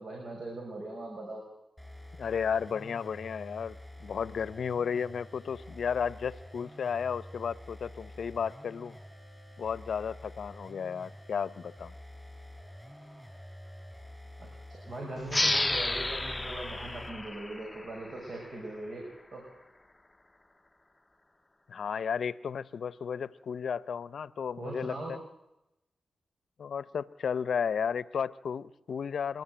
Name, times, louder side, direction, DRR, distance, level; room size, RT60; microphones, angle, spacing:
voice 1, 0.0-1.4 14.4-19.0 19.3-19.4 24.6-25.1, right 2 dB, 60° right, 0 dB, 5.9 m, -40 dB
sound 1, 1.8-17.3, left 1 dB, ahead, 6.4 m, -48 dB
voice 2, 2.2-9.0 9.6-11.9 21.7-25.2 26.6-29.4, left 7 dB, 75° left, 18 dB, 0.7 m, -33 dB
sound 2, 15.3-18.5, left 2 dB, 20° left, 0.7 m, -32 dB
27.5 x 12.0 x 8.9 m, 0.92 s
supercardioid pair, 40°, 0 cm